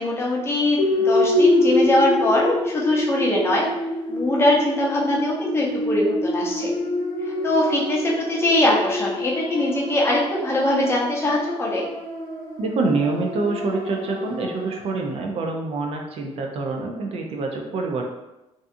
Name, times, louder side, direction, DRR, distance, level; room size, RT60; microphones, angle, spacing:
voice 1, 0.0-3.7 4.1-6.7 7.4-11.8, left 1 dB, 20° left, -4 dB, 0.6 m, -21 dB
sound 1, 0.8-15.0, left 1 dB, 85° left, 0.6 m, -26 dB
voice 2, 12.6-18.1, right 3 dB, 60° right, 2 dB, 0.4 m, -26 dB
2.6 x 2.4 x 2.5 m, 0.95 s
cardioid pair, 135°, 11 cm